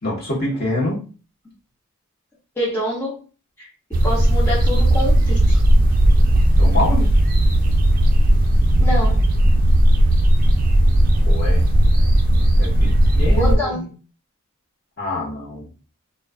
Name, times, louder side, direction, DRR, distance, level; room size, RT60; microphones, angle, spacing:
voice 1, 0.0-1.0 6.5-7.1 11.2-11.6 12.6-13.8 15.0-15.7, left 2 dB, 45° left, -4 dB, 1.0 m, -26 dB
voice 2, 2.6-3.2 3.6-3.7 4.0-5.6 8.8-9.2 13.3-13.8, equal, 10° left, -7 dB, 0.6 m, -26 dB
sound 1, 3.9-13.6, right 1 dB, 40° right, 0.4 m, -15 dB
2.3 x 2.3 x 2.3 m, 0.35 s
head